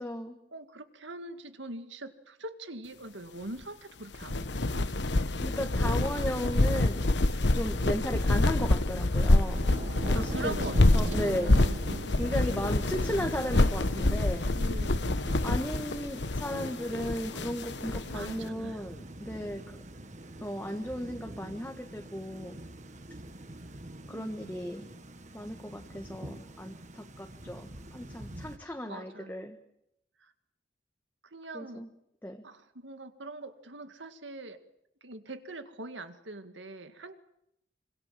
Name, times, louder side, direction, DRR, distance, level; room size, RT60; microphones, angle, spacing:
voice 1, 0.0-0.4 5.4-7.0 7.5-9.6 10.1-10.6 10.9-11.6 12.2-14.5 15.4-19.8 20.4-22.6 24.1-24.9 25.3-29.6 31.5-31.9 32.2-32.4, equal, 10° left, 3 dB, 1.5 m, -35 dB
voice 2, 0.5-5.3 10.1-11.8 14.4-15.2 18.1-18.9 24.1-24.6 28.8-29.5 30.2-30.3 31.3-31.8 32.4-34.6 35.0-37.2, right 2 dB, 90° right, 9 dB, 2.1 m, -43 dB
sound 1, 4.1-18.3, left 2 dB, 70° left, 1.1 m, -27 dB
Thunder / Rain, 9.4-28.6, right 1 dB, 40° right, 1.6 m, -43 dB
26.0 x 25.5 x 7.6 m, 0.78 s
head